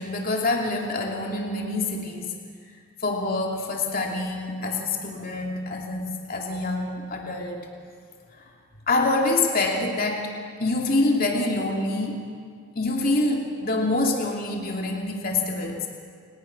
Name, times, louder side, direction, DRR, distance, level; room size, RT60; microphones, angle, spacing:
voice 1, 0.0-2.4 3.0-7.6 8.3-8.5 8.9-10.3 10.6-12.3 12.7-15.9, left 2 dB, 40° left, 0 dB, 2.8 m, -26 dB
29.0 x 18.0 x 6.2 m, 2.1 s
head